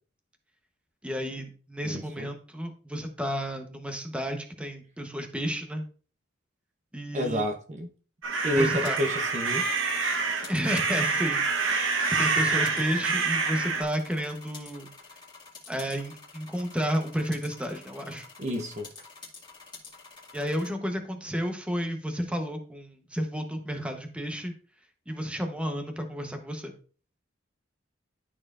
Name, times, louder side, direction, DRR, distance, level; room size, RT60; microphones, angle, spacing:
voice 1, 1.0-5.9 6.9-7.5 8.5-9.0 10.5-14.9 15.7-18.3 20.3-24.5 25.1-26.7, equal, 5° right, 0.9 m, -32 dB
voice 2, 1.8-2.3 7.1-7.9 8.4-9.7 18.4-18.9, equal, 35° right, 0.7 m, -29 dB
sound 1, 8.2-13.8, right 4 dB, 80° right, 1.1 m, -27 dB
sound 2, 8.5-20.7, left 4 dB, 25° left, 2.0 m, -49 dB
12.0 x 4.3 x 2.5 m
head